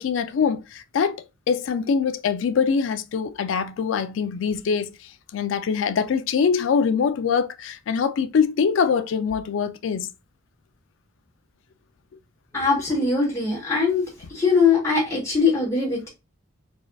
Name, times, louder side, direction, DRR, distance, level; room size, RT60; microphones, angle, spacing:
voice 1, 0.0-5.0 5.3-10.1 15.3-15.4, left 6 dB, 65° left, 0.3 m, -23 dB
voice 2, 12.5-14.0 14.3-16.1, left 4 dB, 15° left, 1.3 m, -21 dB
4.2 x 2.3 x 2.4 m
head